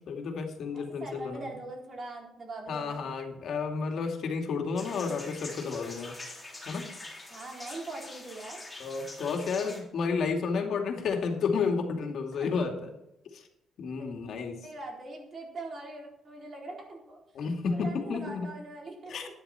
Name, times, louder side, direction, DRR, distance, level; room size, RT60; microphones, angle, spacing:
voice 1, 0.1-1.5 2.7-6.2 6.7-6.9 8.8-12.9 13.3-13.4 13.8-14.6 17.3-18.5 19.1-19.3, left 5 dB, 60° left, 3 dB, 2.6 m, -31 dB
voice 2, 0.7-3.1 7.3-8.6 12.3-12.5 14.6-17.2 17.7-19.1, right 2 dB, 35° right, -1 dB, 4.2 m, -42 dB
sound 1, 4.7-9.8, left 2 dB, 10° left, 3.5 m, -44 dB
12.5 x 10.5 x 4.4 m, 0.88 s
cardioid pair, 140°, 0 cm